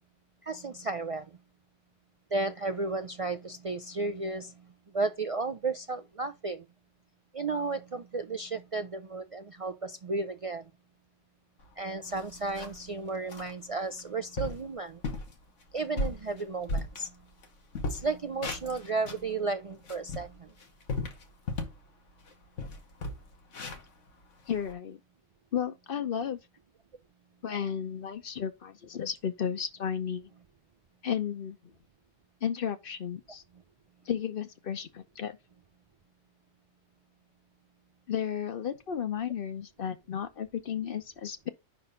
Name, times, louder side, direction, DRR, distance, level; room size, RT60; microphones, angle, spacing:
voice 1, 0.4-1.3 2.3-4.6 4.9-6.6 7.3-10.6 11.8-15.0 15.7-17.1 17.9-20.5, right 3 dB, 55° right, 0.3 m, -33 dB
sound 1, 11.6-11.7 12.1-12.9 13.3-13.5 14.0-14.1 14.4-14.7 15.0-15.3 15.8-17.5 17.7-19.3 19.7-21.8 22.2-22.3 22.6-24.7, left 2 dB, 80° left, 1.5 m, -36 dB
voice 2, 24.5-25.0 25.5-26.4 27.4-30.3 31.0-31.6 32.4-33.4 34.1-35.4 38.1-41.5, left 8 dB, 55° left, 0.9 m, -33 dB
5.4 x 4.1 x 5.3 m
omnidirectional pair, 1.2 m